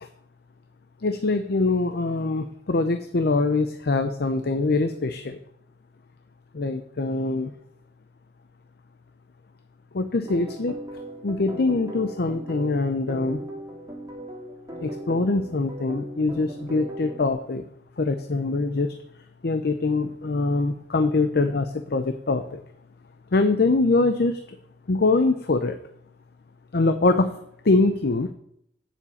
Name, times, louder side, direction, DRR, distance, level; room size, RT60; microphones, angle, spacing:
voice 1, 1.0-5.4 6.5-7.5 9.9-10.8 11.2-13.4 14.8-17.6 18.0-18.9 19.4-22.6 23.3-24.6 24.9-25.8 26.7-27.4 27.6-28.3, left 3 dB, 60° left, 8 dB, 0.6 m, -23 dB
sound 1, 10.2-17.3, right 1 dB, 20° right, 2.0 m, -38 dB
7.3 x 7.1 x 8.3 m, 0.73 s
head